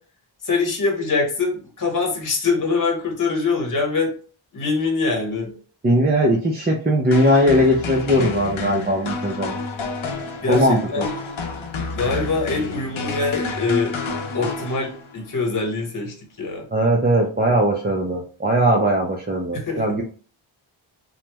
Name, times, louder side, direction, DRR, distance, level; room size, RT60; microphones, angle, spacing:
voice 1, 0.4-4.1 4.5-5.5 10.4-11.1 11.9-13.9 14.3-16.6 19.5-19.8, left 4 dB, 40° left, 2 dB, 0.9 m, -23 dB
voice 2, 5.8-9.6 10.5-11.1 16.7-20.0, equal, 20° right, 0 dB, 0.4 m, -19 dB
sound 1, 7.1-15.2, left 4 dB, 75° left, 0.7 m, -30 dB
2.9 x 2.1 x 3.3 m, 0.41 s
wide cardioid pair, 85°, 48 cm